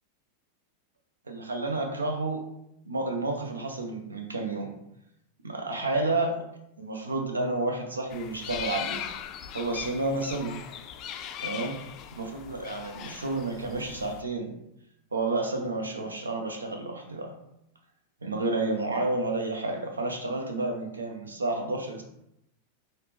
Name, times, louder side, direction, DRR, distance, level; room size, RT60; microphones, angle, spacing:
voice 1, 1.3-2.4 2.8-4.7 5.4-6.4 6.8-9.1 9.5-10.6 11.4-11.8 12.1-14.5 15.1-17.3 18.2-22.0, right 2 dB, 75° right, 3 dB, 0.7 m, -30 dB
sound 1, 8.1-14.2, left 9 dB, 35° left, 0.3 m, -39 dB
5.7 x 2.1 x 3.3 m, 0.80 s
figure-of-eight pair, 90°, 0 cm